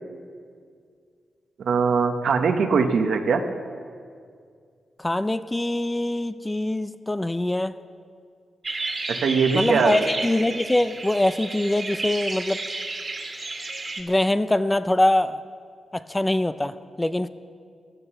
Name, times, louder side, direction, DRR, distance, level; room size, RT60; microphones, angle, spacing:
voice 1, 1.6-3.4 9.1-10.0, right 5 dB, 75° right, 6 dB, 1.1 m, -21 dB
voice 2, 5.0-7.7 9.5-12.6 14.0-15.4 15.9-17.3, left 1 dB, 15° left, 13 dB, 0.5 m, -23 dB
sound 1, 8.6-14.0, right 3 dB, 40° right, 1.9 m, -32 dB
15.0 x 11.0 x 7.0 m, 2.2 s
cardioid pair, 85°, 0 cm